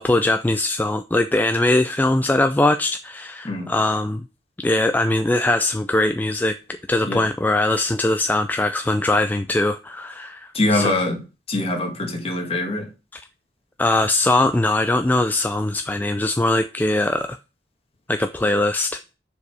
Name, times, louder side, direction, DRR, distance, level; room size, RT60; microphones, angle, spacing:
voice 1, 0.0-4.2 4.6-6.5 6.9-10.9 13.1-13.2 13.8-17.4 18.1-19.0, left 2 dB, 10° left, 0.3 m, -21 dB
voice 2, 10.5-11.2 11.5-12.9, left 2 dB, 35° left, 1.8 m, -23 dB
7.0 x 4.7 x 4.7 m
head